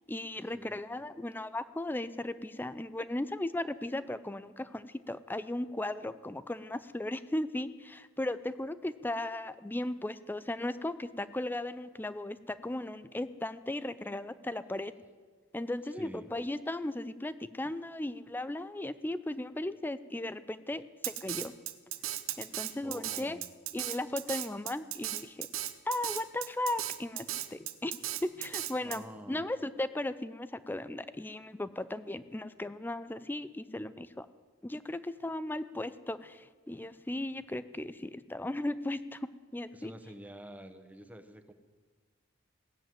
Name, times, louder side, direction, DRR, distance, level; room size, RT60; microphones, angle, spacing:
voice 1, 0.1-14.9 15.5-21.5 22.4-23.4 23.7-25.5 25.9-27.9 28.2-34.3 34.6-39.9, left 1 dB, 10° left, 14 dB, 0.4 m, -36 dB
voice 2, 15.9-16.3 22.8-23.5 28.8-29.5 39.7-41.5, right 1 dB, 10° right, 8 dB, 0.8 m, -48 dB
Drum kit, 21.0-29.0, right 13 dB, 85° right, 0.8 m, -36 dB
17.5 x 7.6 x 8.9 m, 1.5 s
head